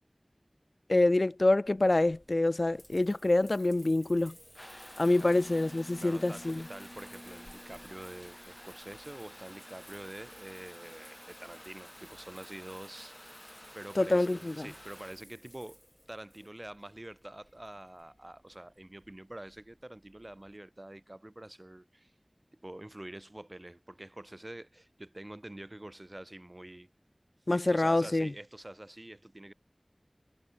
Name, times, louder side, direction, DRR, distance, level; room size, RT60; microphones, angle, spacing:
voice 1, 0.9-4.3 5.0-6.6 14.0-14.7 27.5-28.3, left 2 dB, 65° left, 0.3 m, -26 dB
Water tap faucet / Bathtub (filling or washing) / Trickle dribble, 1.6-20.5, equal, 10° left, 1.5 m, -51 dB
voice 2, 6.0-15.8 16.1-22.1 22.5-26.9 27.5-29.5, right 1 dB, 40° right, 1.3 m, -47 dB
wide cardioid pair, 45°, 0 cm